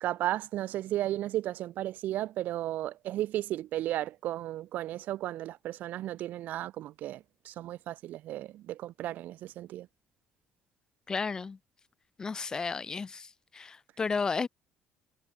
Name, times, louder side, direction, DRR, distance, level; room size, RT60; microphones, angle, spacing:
voice 1, 0.0-7.2 7.4-9.9, right 14 dB, 70° right, 1.5 m, -34 dB
voice 2, 11.1-11.6 12.2-13.3 13.5-14.5, left 5 dB, 25° left, 4.2 m, -32 dB
cardioid pair, 155°, 3 cm